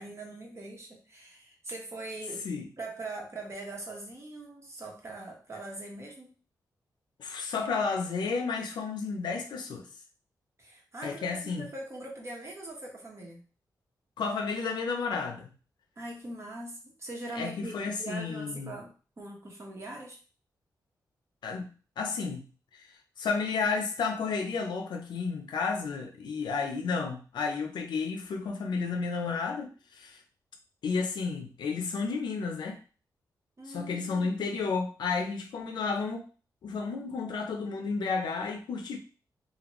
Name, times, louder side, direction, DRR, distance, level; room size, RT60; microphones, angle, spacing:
voice 1, 0.0-2.5 2.8-6.3 10.6-13.4 16.0-20.2 33.6-34.4, right 2 dB, 40° right, 1.1 m, -42 dB
voice 2, 7.2-9.9 11.0-11.7 14.2-15.5 17.4-18.7 21.4-21.7 22.0-22.4 23.2-30.2 30.8-32.8 33.7-36.3 36.6-39.0, left 4 dB, 85° left, 0.6 m, -32 dB
2.8 x 2.5 x 3.0 m
cardioid pair, 80°, 7 cm